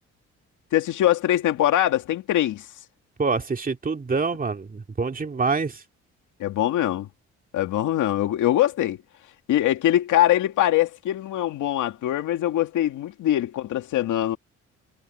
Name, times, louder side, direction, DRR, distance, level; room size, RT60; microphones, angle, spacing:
voice 1, 0.7-2.7 6.4-7.1 7.5-9.0 9.5-14.4, left 13 dB, 80° left, 2.3 m, -22 dB
voice 2, 3.2-5.7, right 4 dB, 30° right, 2.5 m, -26 dB
cardioid pair, 90°, 30 cm